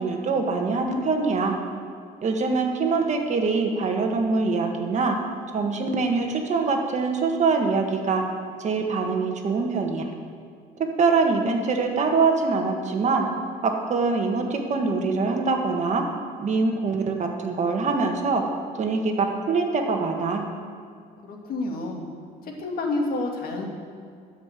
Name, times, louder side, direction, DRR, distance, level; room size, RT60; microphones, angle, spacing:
voice 1, 0.0-1.6 2.2-5.2 5.5-8.2 8.6-10.0 10.8-13.3 13.6-16.1 16.4-18.5 18.8-20.5, right 4 dB, 45° right, 3 dB, 1.7 m, -24 dB
voice 2, 21.2-22.0 22.4-23.7, left 2 dB, 60° left, 1 dB, 2.1 m, -29 dB
12.5 x 5.6 x 8.2 m, 2.2 s
cardioid pair, 110°, 17 cm